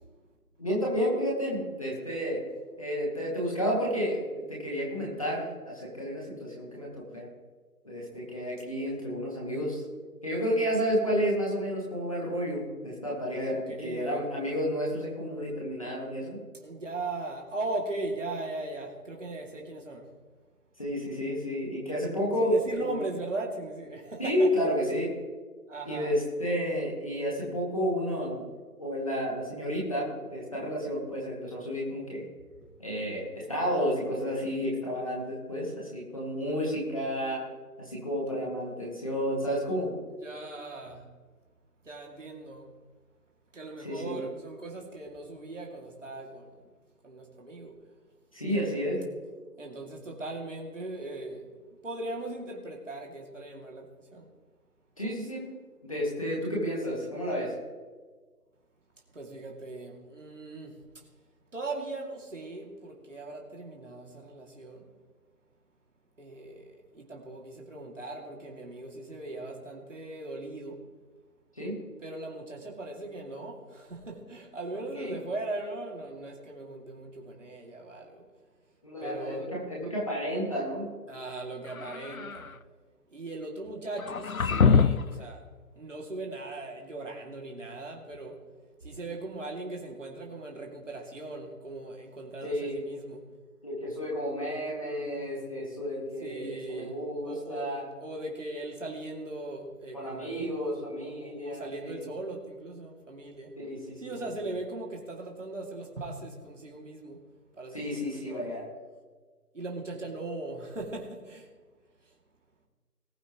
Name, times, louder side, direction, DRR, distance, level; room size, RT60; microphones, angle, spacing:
voice 1, 0.6-2.4 2.8-7.3 7.8-9.8 10.2-16.4 20.8-22.9 24.2-25.1 25.8-28.4 28.8-32.2 32.8-37.4 37.8-39.9 43.8-44.2 48.3-49.0 55.0-55.5 55.8-57.6 71.5-71.8 74.9-75.2 78.8-80.9 92.4-92.8 93.6-97.8 99.9-102.1 103.6-104.1 104.4-104.5 107.7-108.6, equal, 20° left, -4 dB, 2.1 m, -31 dB
voice 2, 13.5-14.2 16.6-20.0 22.4-24.5 25.7-26.1 40.2-41.0 41.9-42.7 43.5-46.5 47.0-47.7 49.6-51.4 51.8-53.9 54.1-54.3 59.1-60.7 61.5-64.9 66.2-66.6 66.9-70.8 72.0-78.2 79.0-79.5 81.1-82.4 83.1-85.4 85.8-88.3 88.8-93.2 96.2-96.9 97.2-97.7 98.0-103.5 104.0-107.2 107.6-108.5 109.5-111.5, right 2 dB, 50° right, 0 dB, 2.6 m, -39 dB
sound 1, 81.6-82.5 84.0-85.2, left 5 dB, 60° left, 0.6 m, -25 dB
20.0 x 8.7 x 3.1 m, 1.4 s
figure-of-eight pair, 175°, 47 cm